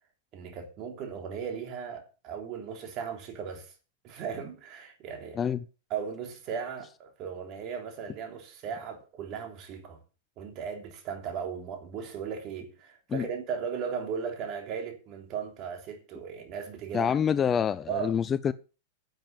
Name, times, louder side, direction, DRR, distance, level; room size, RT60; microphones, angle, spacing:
voice 1, 0.3-3.7 4.0-5.5 5.9-10.0 10.4-17.1 17.9-18.2, right 7 dB, 35° right, 3.3 m, -37 dB
voice 2, 16.9-18.5, left 7 dB, 20° left, 0.5 m, -26 dB
10.5 x 7.6 x 7.1 m
supercardioid pair, 145°, 0 cm